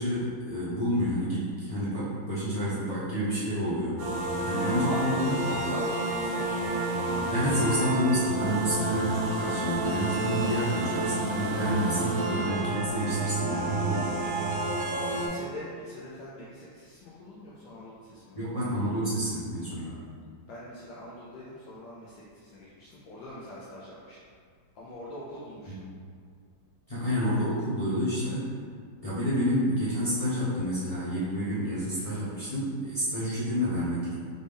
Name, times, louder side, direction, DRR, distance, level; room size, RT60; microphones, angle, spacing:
voice 1, 0.0-4.0 4.4-5.6 7.3-14.1 18.3-20.0 25.7-25.9 26.9-28.5 29.0-34.1, equal, 30° left, -12 dB, 0.7 m, -29 dB
sound 1, 4.0-15.3, right 2 dB, 50° right, 0.9 m, -30 dB
voice 2, 4.4-5.0 5.3-6.6 14.0-14.7 15.0-18.4 19.7-20.0 20.5-24.2 24.7-25.9, left 1 dB, 75° left, -7 dB, 1.4 m, -43 dB
4.0 x 3.6 x 3.4 m, 2.1 s
omnidirectional pair, 2.2 m